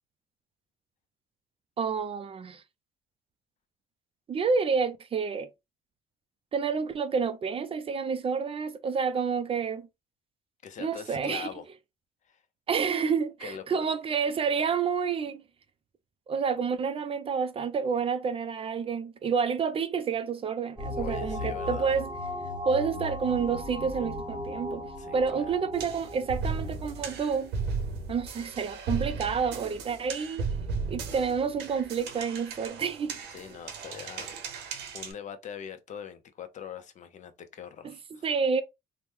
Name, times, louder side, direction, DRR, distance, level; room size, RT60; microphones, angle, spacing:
voice 1, 1.8-2.6 4.3-5.5 6.5-9.9 10.8-11.5 12.7-15.4 16.3-22.1 22.6-27.5 28.1-30.4 30.9-33.2 37.8-38.6, right 6 dB, 35° right, 0.4 m, -29 dB
voice 2, 10.6-11.6 12.3-12.4 13.4-13.9 21.0-22.0 25.0-25.6 33.3-38.3, left 8 dB, 45° left, 0.6 m, -43 dB
sound 1, 20.8-27.2, left 1 dB, 5° right, 1.2 m, -37 dB
sound 2, 25.7-35.1, right 4 dB, 80° right, 0.8 m, -36 dB
3.0 x 2.1 x 3.4 m
cardioid pair, 110°, 17 cm